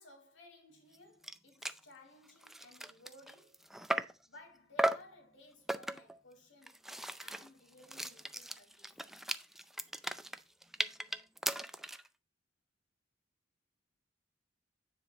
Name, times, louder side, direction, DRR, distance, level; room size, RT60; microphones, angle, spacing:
voice 1, 0.0-3.7 4.3-9.4, left 2 dB, 80° left, 2.4 m, -59 dB
sound 1, 0.9-1.0 1.2-1.4 1.6-1.8 2.3-4.2 4.8-5.1 5.7-6.2 6.6-12.1, right 1 dB, ahead, 0.4 m, -37 dB
9.6 x 5.2 x 4.0 m
head